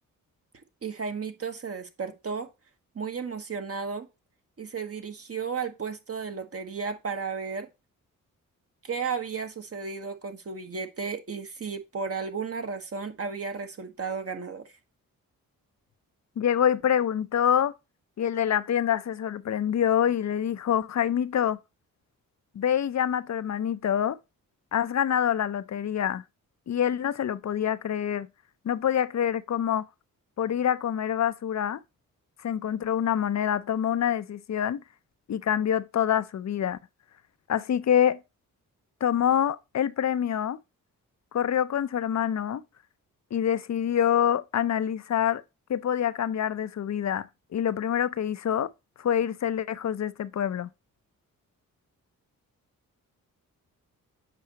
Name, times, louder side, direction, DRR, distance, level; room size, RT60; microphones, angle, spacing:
voice 1, 0.8-2.5 2.9-4.1 4.6-7.7 8.8-14.7, right 5 dB, 40° right, 1.2 m, -34 dB
voice 2, 16.4-17.7 18.2-21.6 22.5-24.2 24.7-26.2 26.7-28.3 28.6-29.9 30.4-31.8 32.4-34.8 35.3-36.8 37.5-38.2 39.0-40.6 41.3-42.6 43.3-45.4 45.7-48.7 49.0-50.7, left 9 dB, 50° left, 0.6 m, -26 dB
7.6 x 5.3 x 2.9 m
cardioid pair, 60°, 35 cm